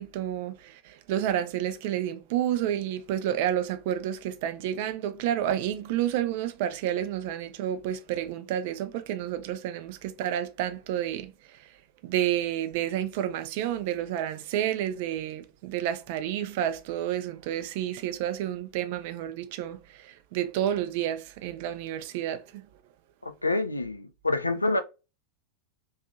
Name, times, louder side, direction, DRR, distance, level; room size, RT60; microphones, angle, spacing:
voice 1, 0.0-11.7 12.0-22.7, right 11 dB, 50° right, 0.4 m, -30 dB
voice 2, 23.3-24.8, left 2 dB, 80° left, 0.3 m, -27 dB
2.6 x 2.3 x 2.6 m
figure-of-eight pair, 90°, 0 cm